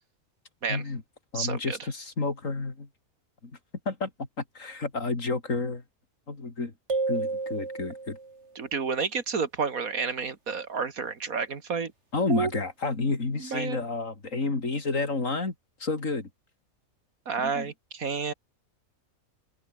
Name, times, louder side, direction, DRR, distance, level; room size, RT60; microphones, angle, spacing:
voice 1, 0.7-1.0 1.3-2.9 3.4-3.5 3.9-4.1 4.4-5.8 6.3-6.7 7.1-8.2 12.1-15.5 15.8-16.3 17.4-17.7, left 3 dB, 65° left, 3.6 m, -30 dB
voice 2, 1.3-1.8 8.6-11.9 12.3-12.5 13.4-13.8 17.3-18.3, right 5 dB, 80° right, 2.5 m, -30 dB
sound 1, 6.9-8.4, right 3 dB, 50° right, 3.1 m, -31 dB
open air
omnidirectional pair, 1.5 m